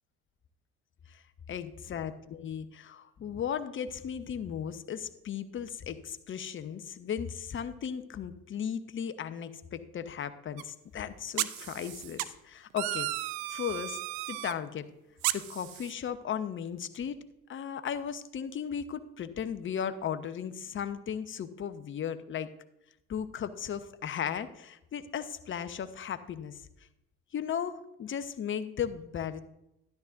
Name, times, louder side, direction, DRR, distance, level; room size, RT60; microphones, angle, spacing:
voice 1, 1.5-13.1 13.5-14.0 14.3-14.9 15.3-17.2 17.5-22.5 23.1-26.6 27.3-29.4, left 8 dB, 40° left, 11 dB, 1.0 m, -36 dB
sound 1, 10.6-10.7 11.4-12.3 12.8-14.5 15.2-15.9, right 16 dB, 70° right, 0.6 m, -34 dB
13.0 x 11.0 x 2.6 m, 0.83 s
hypercardioid pair, 60°, 30 cm